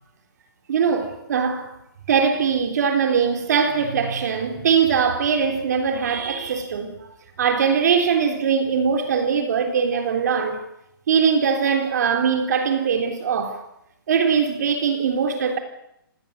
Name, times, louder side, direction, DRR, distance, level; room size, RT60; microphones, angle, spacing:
voice 1, 0.7-1.7 2.1-7.0 7.4-10.6 11.1-13.6 14.1-15.6, right 6 dB, 50° right, 3.6 m, -21 dB
27.5 x 19.5 x 8.3 m
hypercardioid pair, 170°, 12 cm